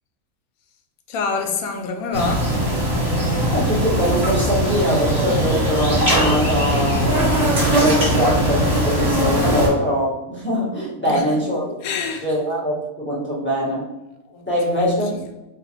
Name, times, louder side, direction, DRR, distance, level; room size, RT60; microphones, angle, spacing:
voice 1, 1.1-2.5 11.1-11.4 11.8-12.3 14.3-15.3, left 4 dB, 85° left, 1.1 m, -27 dB
sound 1, 2.1-9.7, right 1 dB, 50° right, 2.0 m, -20 dB
voice 2, 3.5-11.7 12.2-13.9 14.5-15.2, equal, 10° left, 1.3 m, -23 dB
4.0 x 3.2 x 2.9 m
omnidirectional pair, 1.5 m